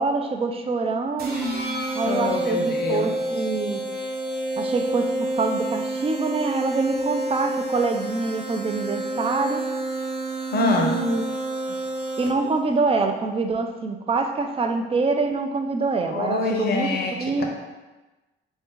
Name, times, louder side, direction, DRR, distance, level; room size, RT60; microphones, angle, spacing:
voice 1, 0.0-1.4 2.0-3.8 4.6-9.6 10.6-11.2 12.2-16.9 17.2-17.4, right 3 dB, 30° right, 4 dB, 0.4 m, -25 dB
sound 1, 1.2-12.6, right 1 dB, 50° right, 1.0 m, -29 dB
voice 2, 2.0-3.1 10.5-11.0 16.1-17.4, left 3 dB, 55° left, 1 dB, 0.8 m, -25 dB
3.4 x 2.7 x 3.7 m, 1.1 s
cardioid pair, 90°, 20 cm